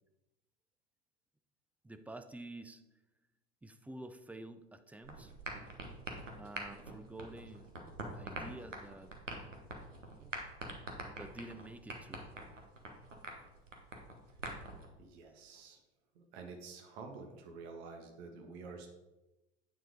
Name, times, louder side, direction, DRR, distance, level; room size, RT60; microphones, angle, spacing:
voice 1, 1.8-2.8 3.6-5.3 6.4-7.7 8.2-9.1 11.2-12.2, right 2 dB, 5° right, 9 dB, 0.4 m, -49 dB
sound 1, 5.0-14.9, right 2 dB, 90° right, 1.3 m, -45 dB
voice 2, 15.0-15.8 16.1-18.9, right 4 dB, 55° right, 4 dB, 1.6 m, -49 dB
9.1 x 4.5 x 5.1 m, 1.0 s
figure-of-eight pair, 80°, 37 cm